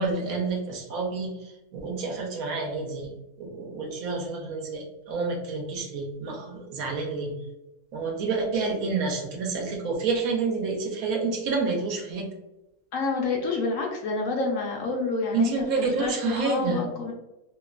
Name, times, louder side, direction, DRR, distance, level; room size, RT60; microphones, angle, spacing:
voice 1, 0.0-3.1 3.4-7.3 7.9-12.3 15.3-16.8, right 4 dB, 70° right, 0 dB, 1.0 m, -29 dB
voice 2, 12.9-17.1, left 3 dB, 70° left, 0 dB, 0.9 m, -28 dB
2.9 x 2.1 x 2.3 m, 0.96 s
omnidirectional pair, 1.6 m